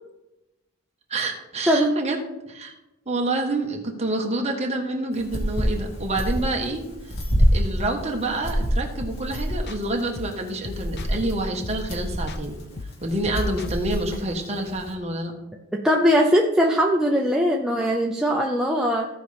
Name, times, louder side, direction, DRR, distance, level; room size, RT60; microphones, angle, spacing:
voice 1, 1.1-2.2 2.5-2.7 3.1-7.1 7.5-12.6 13.0-15.3, right 2 dB, 30° right, 1 dB, 1.3 m, -28 dB
sound 1, 5.1-14.9, equal, 75° left, 2.0 m, -27 dB
sound 2, 9.0-9.4 9.7-11.3 11.6-12.0 12.3-14.1, left 3 dB, 50° left, 0.6 m, -39 dB
voice 2, 15.7-19.1, equal, 5° right, -1 dB, 0.5 m, -20 dB
15.5 x 5.4 x 3.4 m, 0.99 s
head